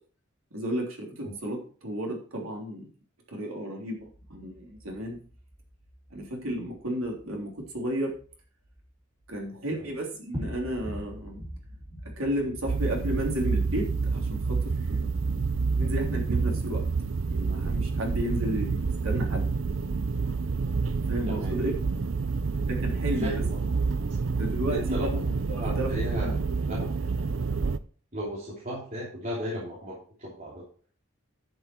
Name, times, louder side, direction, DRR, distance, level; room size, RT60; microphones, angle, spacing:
voice 1, 0.5-2.9 3.3-4.0 4.3-5.2 6.1-8.1 9.3-11.4 12.2-15.2 15.8-16.8 17.3-19.4 21.1-21.7 22.6-23.4 24.4-25.9 26.2-26.4, equal, 85° right, 0 dB, 3.3 m, -33 dB
sound 1, 4.0-9.4 9.7-9.9 10.3-17.7, equal, 20° right, 4.3 m, -44 dB
sound 2, 12.7-27.8, right 4 dB, 65° right, 0.6 m, -28 dB
voice 2, 23.2-23.6 24.7-25.2 25.5-26.4 26.7-26.9 28.1-30.6, equal, 40° right, -7 dB, 3.3 m, -35 dB
10.5 x 7.1 x 4.5 m, 0.41 s
head